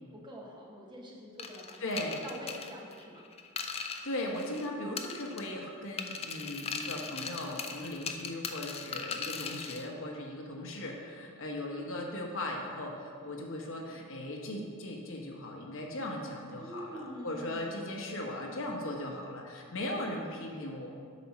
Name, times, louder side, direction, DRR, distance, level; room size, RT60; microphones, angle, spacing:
voice 1, 0.1-3.3 16.6-17.8, equal, 20° right, -2 dB, 1.0 m, -45 dB
sound 1, 1.4-4.7 5.0-5.6 6.0-9.9, left 5 dB, 25° left, 0.4 m, -39 dB
voice 2, 1.8-2.2 4.0-20.9, left 1 dB, 65° left, 0 dB, 1.1 m, -38 dB
8.5 x 4.2 x 5.9 m, 2.2 s
head